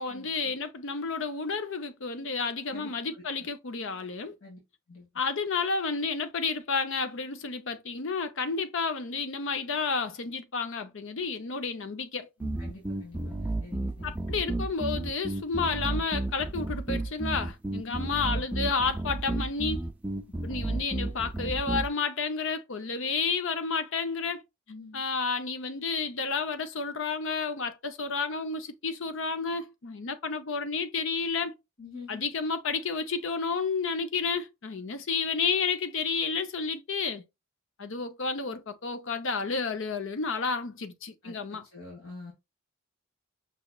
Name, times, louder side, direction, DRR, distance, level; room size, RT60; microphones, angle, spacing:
voice 1, 0.0-4.4 5.1-12.3 14.0-19.9 20.4-24.4 24.9-31.5 32.1-37.2 37.8-41.7, left 4 dB, 65° left, 0.6 m, -31 dB
voice 2, 2.7-3.2 4.4-4.6 4.9-5.1 12.4-14.2 17.9-18.2 24.7-25.0 31.8-32.2 41.2-42.3, left 3 dB, 80° left, 1.7 m, -46 dB
sound 1, 12.4-21.9, right 2 dB, 5° right, 0.4 m, -32 dB
5.5 x 3.0 x 2.3 m
head